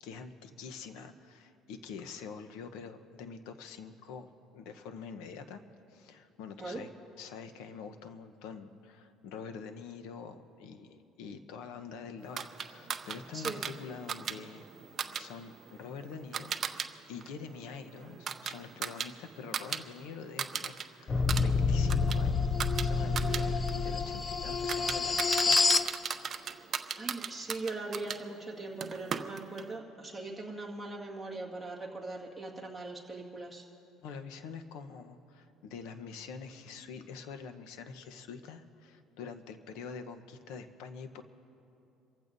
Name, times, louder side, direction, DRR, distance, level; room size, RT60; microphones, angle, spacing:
voice 1, 0.0-5.6 5.9-6.9 7.2-14.7 15.1-22.5 22.8-25.6 26.1-26.3 34.0-41.2, left 5 dB, 80° left, 8 dB, 1.0 m, -45 dB
sound 1, 12.4-16.9 17.2-19.8 20.1-20.8 21.2-28.2 28.8-29.7, right 7 dB, 35° right, 0.6 m, -38 dB
sound 2, 21.1-25.9, left 4 dB, 25° left, 0.4 m, -28 dB
voice 2, 27.0-33.6, right 2 dB, 5° right, -4 dB, 2.0 m, -40 dB
27.5 x 15.0 x 2.7 m, 2.8 s
cardioid pair, 140°, 0 cm